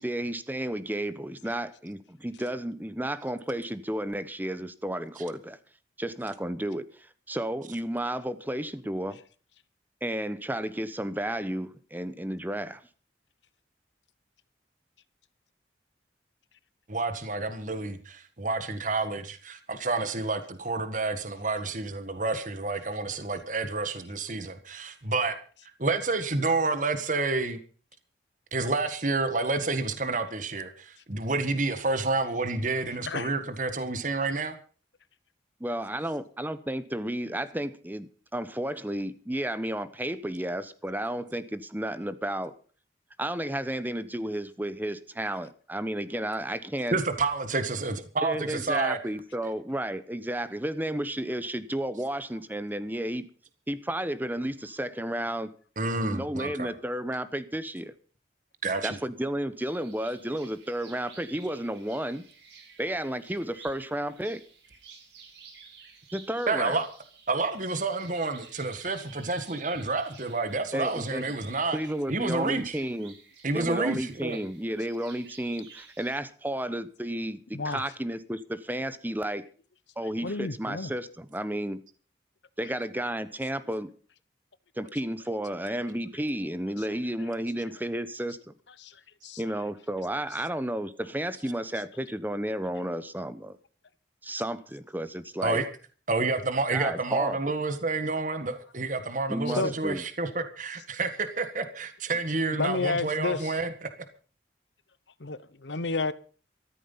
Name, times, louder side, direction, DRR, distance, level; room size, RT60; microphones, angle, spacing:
voice 1, 0.0-5.6 6.0-9.2 10.0-12.8 35.6-42.5 43.2-47.0 48.2-53.3 53.7-55.5 56.0-57.9 58.8-62.2 62.8-64.4 66.1-66.8 70.7-71.2 71.7-73.2 73.5-79.4 80.0-81.8 82.6-83.9 84.8-88.5 89.4-93.6 94.2-95.6 96.7-97.5 99.3-100.0, right 1 dB, 10° right, 1.0 m, -32 dB
voice 2, 16.9-25.4 25.8-27.6 28.5-34.6 46.9-49.0 55.8-56.7 58.6-59.0 66.5-66.9 67.3-71.8 72.1-72.8 73.4-74.4 95.4-95.7 96.1-103.9, right 3 dB, 45° right, 1.7 m, -29 dB
voice 3, 33.0-33.3 77.5-77.9 80.2-80.9 88.8-89.4 99.5-99.7 102.6-103.6 105.2-106.1, left 3 dB, 85° left, 1.1 m, -31 dB
sound 1, 59.6-76.2, right 5 dB, 90° right, 6.3 m, -53 dB
14.5 x 13.0 x 5.6 m
head